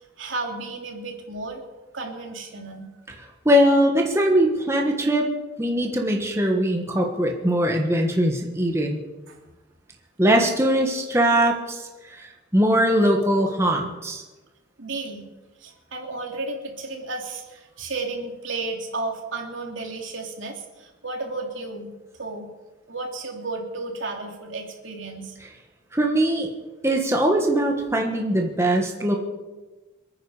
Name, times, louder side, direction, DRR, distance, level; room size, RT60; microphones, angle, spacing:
voice 1, 0.2-1.6 1.9-2.8 9.3-9.4 14.8-15.3 15.6-21.9 22.2-22.5 22.9-25.3, right 3 dB, 80° right, 1 dB, 3.1 m, -33 dB
voice 2, 3.4-5.3 5.6-9.0 10.2-14.2 25.9-26.5 26.8-29.2, equal, 15° right, 1 dB, 1.5 m, -21 dB
27.5 x 9.6 x 5.0 m, 1.2 s
head